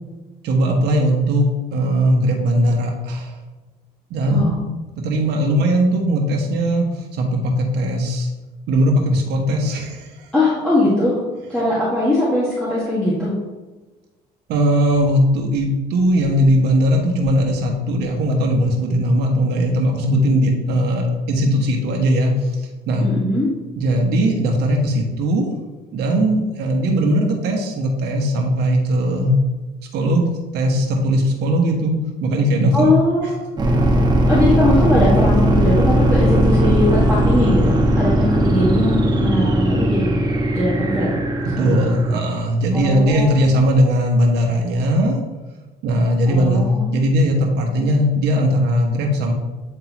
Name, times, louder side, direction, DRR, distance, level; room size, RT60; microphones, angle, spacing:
voice 1, 0.4-3.3 4.1-4.6 5.0-6.9 7.2-8.3 8.7-10.1 14.5-22.5 22.9-23.1 23.8-25.5 25.9-29.3 29.9-33.0 41.4-45.2 45.8-49.3, equal, 80° right, 1 dB, 1.3 m, -19 dB
voice 2, 4.3-4.6 10.3-11.2 11.5-13.3 23.0-23.5 32.7-33.6 34.3-40.1 40.5-41.1 42.7-43.6 46.2-47.0, left 1 dB, 5° left, -10 dB, 1.7 m, -20 dB
sound 1, 33.6-42.2, right 1 dB, 25° right, 1.1 m, -18 dB
8.7 x 3.7 x 3.0 m, 1.2 s
cardioid pair, 110°, 17 cm